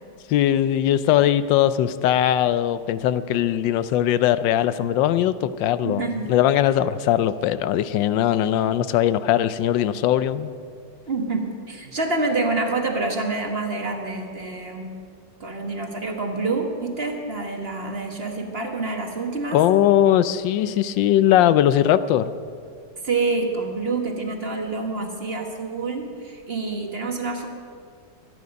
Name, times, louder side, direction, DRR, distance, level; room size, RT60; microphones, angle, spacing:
voice 1, 0.3-10.5 19.5-22.3, left 11 dB, 90° left, 14 dB, 1.3 m, -20 dB
voice 2, 5.8-6.3 11.1-14.9 15.4-19.6 23.0-27.5, right 3 dB, 35° right, 3 dB, 1.4 m, -27 dB
24.0 x 9.6 x 5.3 m, 2.3 s
omnidirectional pair, 2.0 m